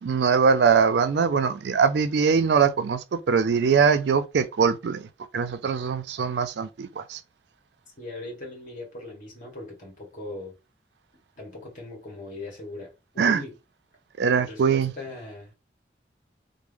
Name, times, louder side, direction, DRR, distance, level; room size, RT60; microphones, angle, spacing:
voice 1, 0.0-5.1 5.3-7.2 13.2-13.4 14.2-14.9, right 6 dB, 70° right, 0.4 m, -22 dB
voice 2, 8.0-10.5 11.4-13.6 14.4-15.5, left 2 dB, 45° left, 1.5 m, -39 dB
3.4 x 2.0 x 3.5 m
head